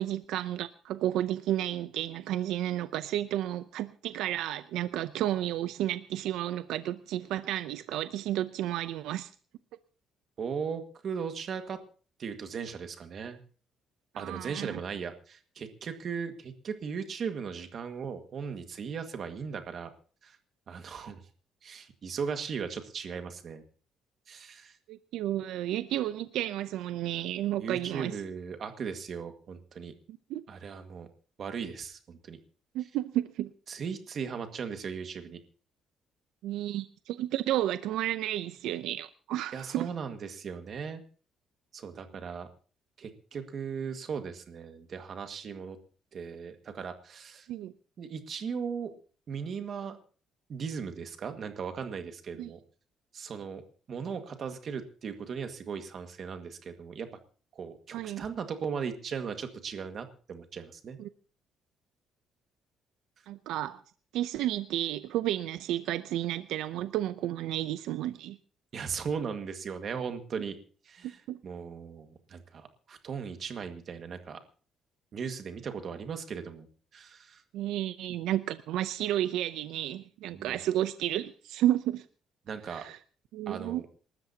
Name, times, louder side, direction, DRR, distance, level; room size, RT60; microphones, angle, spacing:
voice 1, 0.0-9.3 14.1-14.8 24.9-28.2 30.1-30.4 32.7-33.5 36.4-39.9 47.5-47.7 52.4-52.5 57.9-58.2 61.0-61.1 63.3-63.8 64.1-68.4 71.0-71.4 77.5-82.1 82.7-83.0 83.3-83.8, right 13 dB, 85° right, 13 dB, 0.6 m, -32 dB
voice 2, 10.4-11.8 12.2-13.4 14.2-19.9 20.2-20.4 20.7-21.2 21.6-23.6 24.3-24.8 27.6-29.9 30.5-31.1 31.4-32.4 33.7-35.4 39.5-41.0 41.7-42.5 43.0-45.8 46.1-47.5 48.0-48.9 49.3-50.0 50.5-52.6 53.1-53.6 53.9-57.1 57.5-61.0 68.7-70.6 70.8-74.4 75.1-76.7 76.9-77.4 80.3-80.6 82.5-82.9 83.5-83.8, right 6 dB, 45° right, 7 dB, 1.8 m, -37 dB
27.5 x 13.0 x 2.9 m, 0.40 s
cardioid pair, 150°, 0 cm